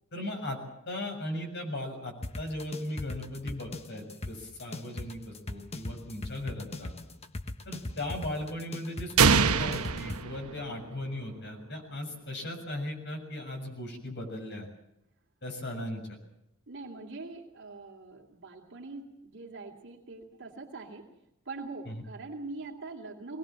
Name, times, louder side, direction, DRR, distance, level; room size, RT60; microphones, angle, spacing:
voice 1, 0.1-0.6 0.9-6.9 7.6-14.7 15.4-16.2 21.9-22.0, left 1 dB, 50° left, 4 dB, 6.8 m, -37 dB
sound 1, 2.2-10.2, left 2 dB, 30° left, 1.2 m, -39 dB
sound 2, 9.2-11.1, right 6 dB, 85° right, 1.0 m, -24 dB
voice 2, 16.7-21.1 21.4-23.4, right 3 dB, 55° right, -1 dB, 2.8 m, -43 dB
24.5 x 20.0 x 7.6 m, 0.85 s
head